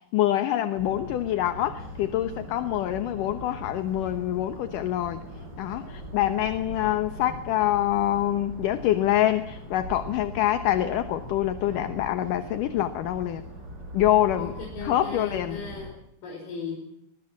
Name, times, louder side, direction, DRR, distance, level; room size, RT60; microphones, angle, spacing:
voice 1, 0.1-5.2 5.6-13.4 13.9-14.5 14.8-15.6, left 13 dB, 70° left, 11 dB, 2.4 m, -25 dB
sound 1, 0.7-15.9, equal, 25° right, 4.9 m, -41 dB
voice 2, 14.4-16.8, left 5 dB, 85° left, -1 dB, 7.1 m, -37 dB
24.5 x 21.5 x 7.5 m, 0.76 s
omnidirectional pair, 4.4 m